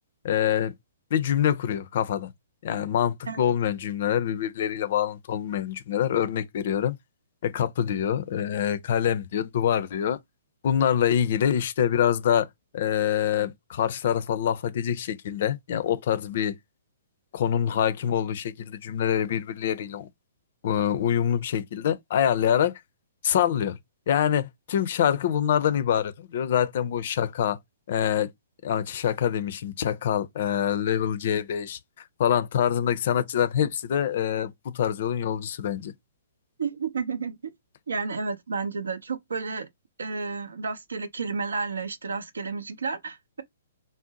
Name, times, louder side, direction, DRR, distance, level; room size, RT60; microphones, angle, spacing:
voice 1, 0.2-0.7 1.1-2.3 2.6-7.0 7.4-10.2 10.6-12.5 12.7-16.6 17.3-20.1 20.6-22.7 23.2-23.8 24.1-27.6 27.9-28.3 28.6-35.9, left 9 dB, 50° left, 0.4 m, -25 dB
voice 2, 36.6-37.5 37.9-39.7 40.0-43.4, right 4 dB, 70° right, 0.6 m, -31 dB
2.6 x 2.0 x 3.8 m
figure-of-eight pair, 120°, 0 cm